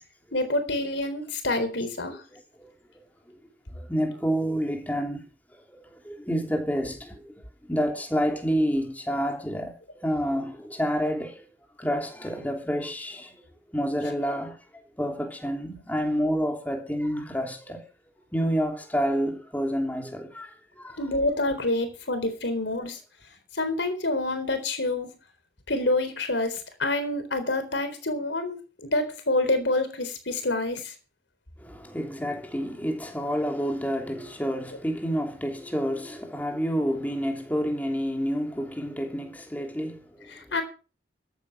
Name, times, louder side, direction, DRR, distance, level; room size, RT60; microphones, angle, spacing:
voice 1, 0.3-2.2 21.0-23.0 23.5-25.2 25.7-30.9 40.3-40.6, left 2 dB, 75° left, 3.9 m, -27 dB
voice 2, 3.9-5.2 5.7-7.2 7.7-11.4 11.8-13.3 13.7-14.6 15.0-17.8 18.3-21.0 31.6-40.3, equal, 10° left, 3.1 m, -29 dB
14.0 x 9.5 x 5.8 m
head